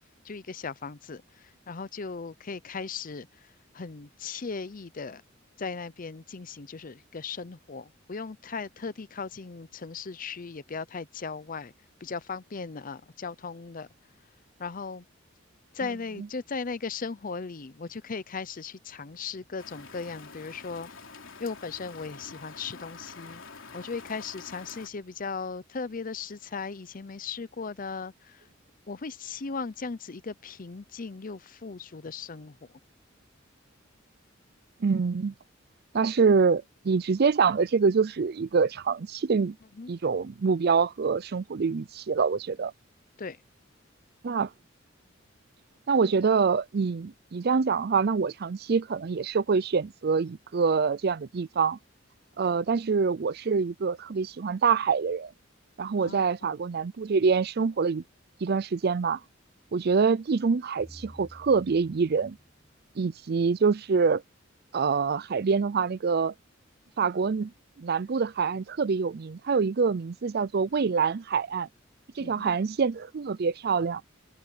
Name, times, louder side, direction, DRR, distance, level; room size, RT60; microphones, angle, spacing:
voice 1, 0.2-5.2 5.6-11.7 12.0-13.9 14.6-15.0 15.7-20.9 21.4-23.4 23.7-28.5 28.9-32.7 39.7-39.9 43.2-43.4 56.0-56.6 72.2-72.5, left 4 dB, 45° left, 0.6 m, -37 dB
Rain, 19.6-24.9, left 4 dB, 75° left, 3.4 m, -47 dB
voice 2, 34.8-35.3 35.9-39.5 39.9-42.7 44.2-44.5 45.9-51.8 52.4-55.3 55.8-58.0 58.4-59.2 59.7-62.4 63.0-64.2 64.7-66.3 67.0-67.5 67.8-71.7 72.2-74.0, right 5 dB, 50° right, 0.5 m, -25 dB
sound 1, 60.8-63.9, equal, 10° right, 7.7 m, -53 dB
head